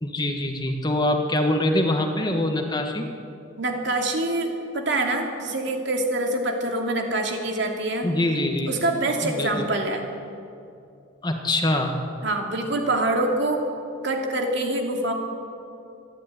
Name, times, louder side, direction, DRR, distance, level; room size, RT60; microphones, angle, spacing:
voice 1, 0.0-3.1 8.0-8.7 9.2-9.7 11.2-12.0, left 1 dB, 25° left, 4 dB, 1.6 m, -24 dB
voice 2, 3.6-8.1 8.7-10.1 12.2-13.7 14.0-15.1, right 2 dB, 65° right, 2 dB, 2.7 m, -25 dB
25.5 x 11.0 x 9.4 m, 2.6 s
head